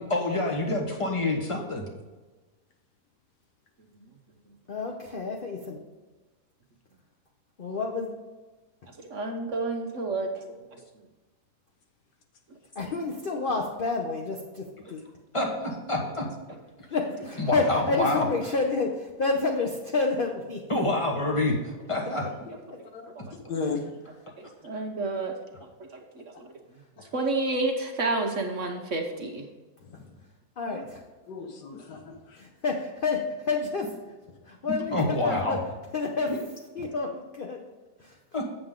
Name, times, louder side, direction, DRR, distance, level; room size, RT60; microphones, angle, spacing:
voice 1, 0.0-1.8 15.3-16.3 17.4-18.3 20.7-22.3 34.9-35.6 36.3-36.4 38.3-38.4, left 2 dB, 20° left, 1 dB, 1.2 m, -27 dB
voice 2, 4.7-5.8 7.6-8.1 12.7-15.0 16.9-20.6 30.6-31.0 32.4-33.9 34.5-35.6 35.9-36.3 36.7-37.6 38.0-38.2, left 3 dB, 45° left, 2 dB, 0.7 m, -29 dB
voice 3, 9.1-10.6 23.3-23.4 24.4-25.3 25.8-25.9 26.1-26.5 27.1-29.4, right 2 dB, 55° right, 3 dB, 1.1 m, -30 dB
voice 4, 23.5-23.8 27.0-27.1 29.8-30.1 30.7-30.8 31.3-32.4, left 4 dB, 75° left, 3 dB, 1.7 m, -35 dB
8.0 x 7.5 x 3.7 m, 1.3 s
omnidirectional pair, 1.8 m